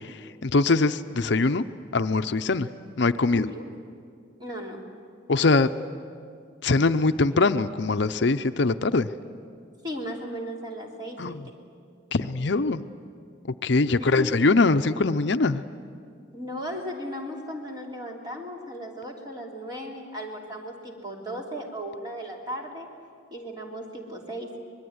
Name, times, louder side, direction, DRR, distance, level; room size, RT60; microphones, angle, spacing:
voice 1, 0.0-1.6 1.9-2.7 3.0-3.5 5.3-5.7 6.6-9.1 11.2-11.4 12.1-12.8 13.6-15.6, left 3 dB, 60° left, 10 dB, 0.6 m, -22 dB
voice 2, 3.3-3.6 4.4-4.8 9.8-11.5 14.0-14.3 16.3-22.9 23.3-24.6, equal, 20° right, 0 dB, 3.2 m, -36 dB
24.5 x 21.5 x 9.6 m, 2.3 s
head